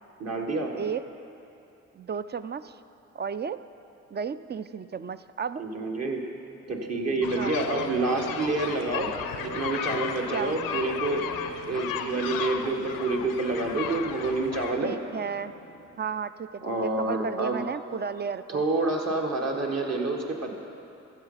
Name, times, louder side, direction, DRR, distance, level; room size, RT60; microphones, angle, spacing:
voice 1, 0.2-0.7 5.6-6.2 6.7-9.1 9.4-11.2 11.7-14.9 16.6-17.6 18.5-20.5, right 2 dB, 50° right, 1 dB, 1.8 m, -28 dB
voice 2, 1.9-2.8 3.1-3.6 4.1-5.6 7.4-7.5 10.3-10.5 14.8-15.5 16.0-18.6, right 6 dB, 30° right, 12 dB, 0.4 m, -33 dB
sound 1, 6.7-16.0, right 2 dB, 70° right, 2.4 m, -43 dB
sound 2, 7.2-14.7, left 8 dB, 85° left, 0.6 m, -35 dB
13.5 x 8.0 x 5.7 m, 2.8 s
supercardioid pair, 45°, 34 cm